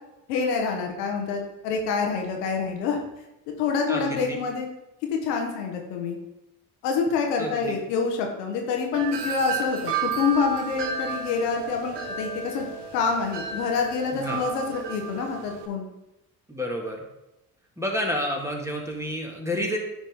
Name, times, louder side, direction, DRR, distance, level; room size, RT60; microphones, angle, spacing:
voice 1, 0.3-3.0 3.6-4.7 5.2-6.2 6.8-12.7 12.9-15.9, left 5 dB, 80° left, 2 dB, 1.3 m, -26 dB
voice 2, 3.9-4.4 7.4-7.7 14.1-14.4 16.5-17.0 17.8-19.8, equal, 5° right, 0 dB, 2.0 m, -30 dB
Wind chime, 8.9-15.7, right 6 dB, 60° right, 1.2 m, -33 dB
9.8 x 4.8 x 3.7 m, 0.90 s
hypercardioid pair, 50°, 46 cm